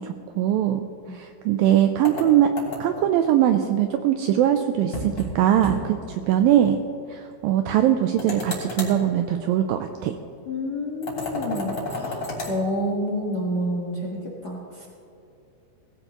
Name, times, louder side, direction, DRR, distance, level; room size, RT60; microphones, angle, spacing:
voice 1, 0.0-2.5 2.8-6.8 7.1-10.2, right 11 dB, 90° right, 7 dB, 2.0 m, -21 dB
sound 1, 2.0-3.1 4.9-5.3 5.6-5.8 6.1-6.2 8.2-9.0 11.0-12.6, left 2 dB, 30° left, 3.4 m, -31 dB
voice 2, 10.4-14.9, equal, 75° left, -3 dB, 0.9 m, -29 dB
20.0 x 15.5 x 3.0 m, 2.8 s
omnidirectional pair, 4.7 m